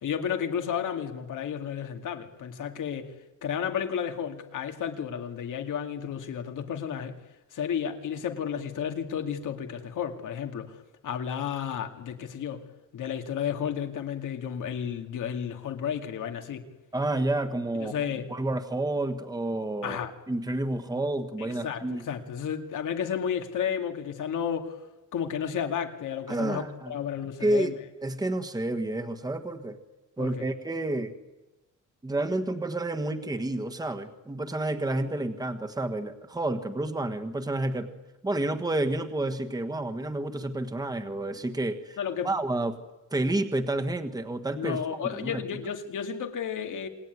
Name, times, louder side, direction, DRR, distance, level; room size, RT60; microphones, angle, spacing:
voice 1, 0.0-3.1 3.4-7.2 7.5-10.8 11.0-12.6 12.9-16.6 17.8-18.3 19.8-20.1 21.4-24.8 25.1-27.7 30.2-30.5 42.0-42.3 44.6-46.9, left 8 dB, 85° left, 2.6 m, -32 dB
voice 2, 16.9-18.0 18.3-20.0 20.3-22.1 26.3-26.9 27.4-27.7 28.0-29.8 30.2-31.1 32.0-37.9 38.2-42.0 42.2-42.8 43.1-45.4, right 2 dB, 15° right, 1.5 m, -30 dB
27.5 x 21.0 x 9.5 m
wide cardioid pair, 160°, 30 cm